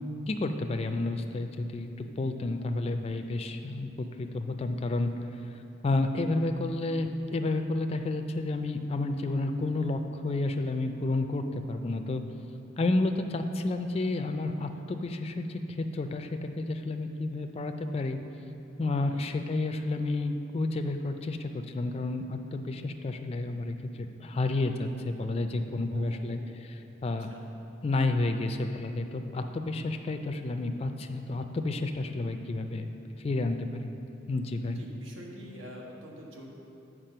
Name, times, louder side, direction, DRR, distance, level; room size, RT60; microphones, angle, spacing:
voice 1, 0.3-5.1 5.8-12.2 12.8-18.2 18.8-27.3 27.8-32.9 33.2-33.9 34.3-34.8, left 2 dB, 30° left, 6 dB, 0.3 m, -31 dB
voice 2, 19.0-19.3 25.9-26.6 27.1-27.4 34.7-36.5, equal, 80° right, -1 dB, 1.3 m, -47 dB
7.5 x 4.8 x 6.6 m, 2.9 s
head